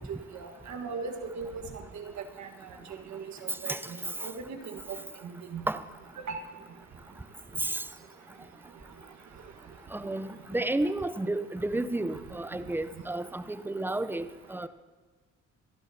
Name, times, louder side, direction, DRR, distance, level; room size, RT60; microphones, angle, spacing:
voice 1, 0.3-2.1 2.4-2.5 3.1-3.7 4.2-5.0 5.5-5.7 6.3-6.4, right 4 dB, 65° right, 4 dB, 1.5 m, -38 dB
voice 2, 9.9-14.7, right 2 dB, 5° right, 12 dB, 0.5 m, -31 dB
24.0 x 11.0 x 2.8 m, 1.4 s
cardioid pair, 90°, 30 cm